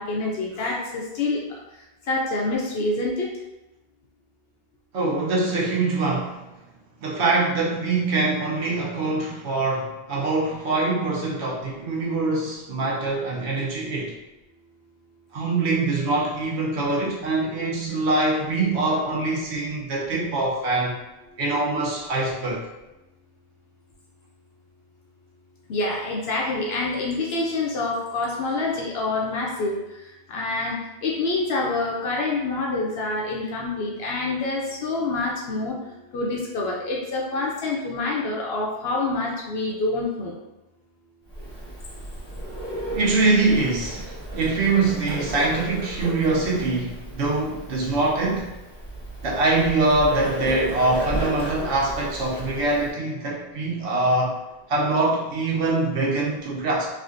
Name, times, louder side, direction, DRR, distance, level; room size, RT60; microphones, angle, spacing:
voice 1, 0.0-1.4 2.1-3.3 25.7-29.8 30.3-35.8 36.1-40.3, left 2 dB, 70° left, -2 dB, 0.8 m, -26 dB
voice 2, 4.9-6.4 7.0-14.1 15.3-21.0 21.4-22.6 42.9-48.5 49.2-54.4 54.7-56.9, right 2 dB, 85° right, -4 dB, 1.1 m, -24 dB
Bird, 41.3-52.9, right 1 dB, 5° left, 1.0 m, -34 dB
3.4 x 2.5 x 2.5 m, 0.99 s
omnidirectional pair, 1.1 m